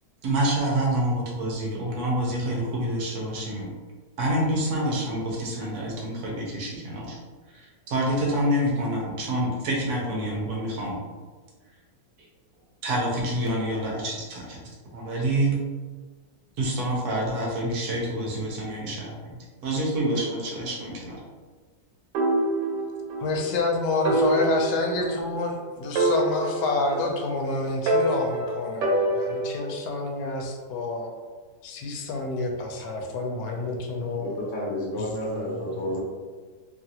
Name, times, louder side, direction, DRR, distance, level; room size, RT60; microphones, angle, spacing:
voice 1, 0.2-3.7 4.2-7.2 7.5-11.0 12.8-14.6 14.9-15.5 16.6-19.4 19.6-21.2, right 1 dB, 70° right, -3 dB, 1.1 m, -27 dB
sound 1, 22.1-23.3 23.6-23.7 24.0-25.6 26.0-27.4 27.9-29.7, right 1 dB, 90° right, 1.3 m, -26 dB
voice 2, 23.2-31.1 31.6-34.3 35.0-36.0, left 3 dB, 90° left, 2 dB, 1.2 m, -28 dB
voice 3, 34.2-36.0, left 1 dB, 60° left, -6 dB, 0.9 m, -30 dB
3.0 x 2.4 x 2.7 m, 1.4 s
omnidirectional pair, 1.8 m